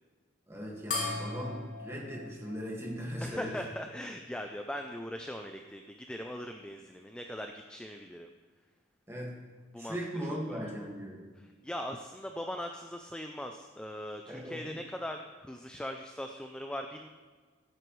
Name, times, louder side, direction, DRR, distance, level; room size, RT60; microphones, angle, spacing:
voice 1, 0.5-3.6 9.1-9.4 9.8-11.3 14.3-14.8, equal, 15° right, -3 dB, 1.7 m, -39 dB
sound 1, 0.9-3.7, left 3 dB, 45° left, 1.9 m, -39 dB
voice 2, 3.2-8.3 9.7-10.0 10.3-10.6 11.6-17.1, equal, 5° left, 4 dB, 0.3 m, -40 dB
15.0 x 7.8 x 3.1 m, 1.5 s
head